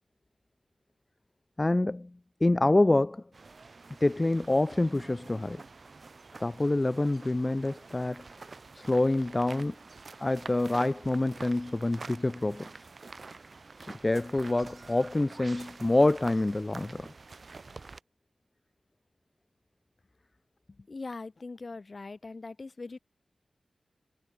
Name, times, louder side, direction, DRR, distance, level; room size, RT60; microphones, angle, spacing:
voice 1, 1.6-2.1 2.4-3.2 4.0-5.6 6.4-8.2 8.7-9.8 10.2-12.7 13.9-17.1, left 2 dB, 30° left, 0.4 m, -26 dB
sound 1, 3.3-18.0, right 3 dB, 55° right, 1.7 m, -48 dB
voice 2, 20.7-23.0, left 3 dB, 50° left, 3.8 m, -41 dB
wide cardioid pair, 60°, 0 cm